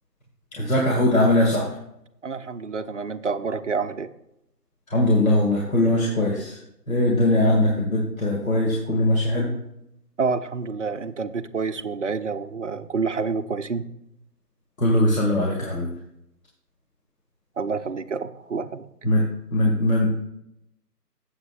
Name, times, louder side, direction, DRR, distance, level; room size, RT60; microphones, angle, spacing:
voice 1, 0.6-1.7 4.9-6.6 6.9-9.5 14.8-15.9 19.0-19.3 19.5-20.2, left 1 dB, 55° left, -2 dB, 2.2 m, -21 dB
voice 2, 2.2-4.1 10.2-13.9 17.6-18.9, right 4 dB, 50° right, 9 dB, 0.6 m, -28 dB
14.5 x 7.9 x 2.4 m, 0.81 s
figure-of-eight pair, 160°, 48 cm